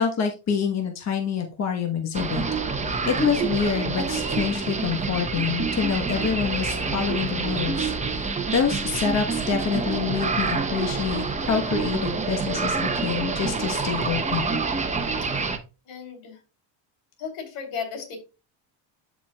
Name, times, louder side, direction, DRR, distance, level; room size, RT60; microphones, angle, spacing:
voice 1, 0.0-2.4 2.8-14.6, left 6 dB, 30° left, 3 dB, 1.2 m, -27 dB
sound 1, 2.1-15.6, right 4 dB, 15° right, 0.9 m, -27 dB
voice 2, 15.9-16.4 17.2-18.2, left 6 dB, 75° left, 4 dB, 3.5 m, -35 dB
12.5 x 4.6 x 2.3 m, 0.30 s
cardioid pair, 115°, 49 cm